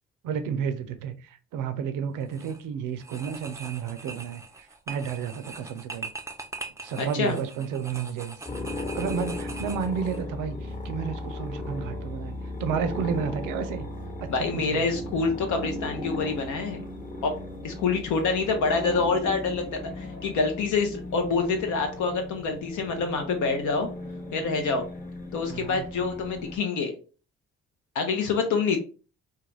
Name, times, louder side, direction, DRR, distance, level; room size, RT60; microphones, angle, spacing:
voice 1, 0.2-6.1 6.8-8.4 8.8-13.9 14.2-14.9 25.4-25.8, right 7 dB, 70° right, 0.5 m, -32 dB
sound 1, 2.2-2.6 3.0-10.2, right 3 dB, 10° right, 0.4 m, -42 dB
voice 2, 7.0-7.4 14.3-16.8 17.2-17.3 17.6-23.9 24.3-24.8 25.3-26.9 27.9-28.8, left 4 dB, 60° left, 0.6 m, -26 dB
sound 2, 8.5-26.6, left 2 dB, 25° left, 1.1 m, -36 dB
2.3 x 2.2 x 3.1 m
hypercardioid pair, 45°, 33 cm